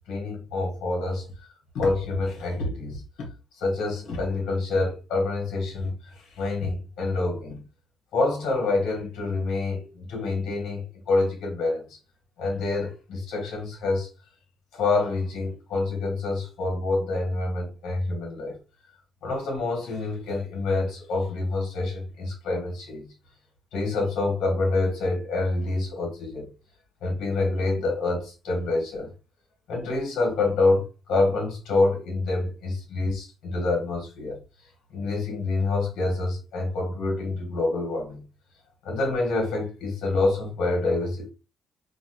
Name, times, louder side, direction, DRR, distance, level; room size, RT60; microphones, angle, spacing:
voice 1, 0.1-1.3 1.7-3.3 3.6-7.6 8.1-12.0 12.4-14.1 14.7-18.6 19.2-23.1 23.7-26.5 27.0-29.1 29.7-34.4 34.9-38.2 38.8-41.3, left 3 dB, 80° left, 1.3 m, -27 dB
4.0 x 2.2 x 2.5 m
cardioid pair, 90°, 0 cm